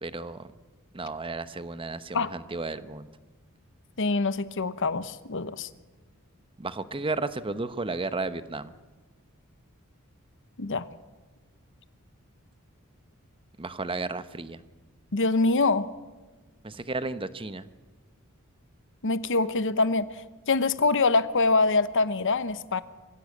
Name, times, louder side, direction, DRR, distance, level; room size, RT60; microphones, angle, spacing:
voice 1, 0.0-0.5 0.9-3.1 6.6-8.7 13.6-14.6 16.6-17.7, right 3 dB, 25° right, 13 dB, 1.0 m, -33 dB
voice 2, 4.0-5.7 10.6-10.9 15.1-15.9 19.0-20.1 20.5-22.8, left 3 dB, 60° left, 14 dB, 1.0 m, -24 dB
24.5 x 16.0 x 8.5 m, 1.2 s
head